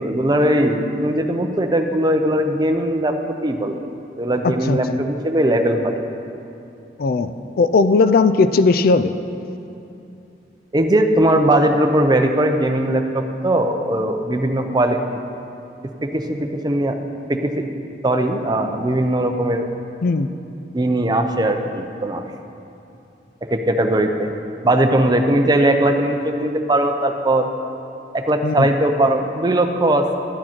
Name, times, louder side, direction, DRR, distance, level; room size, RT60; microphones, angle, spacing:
voice 1, 0.0-3.2 3.4-3.8 4.2-6.0 10.7-15.2 16.0-17.0 17.3-17.7 18.0-19.7 20.7-22.2 23.5-24.3 24.6-27.5 28.1-30.2, right 1 dB, 25° right, 5 dB, 0.6 m, -19 dB
voice 2, 4.4-5.0 7.0-7.3 7.6-9.1 20.0-20.3 28.4-28.7, left 3 dB, 55° left, 11 dB, 0.4 m, -17 dB
12.0 x 8.7 x 4.4 m, 2.7 s
head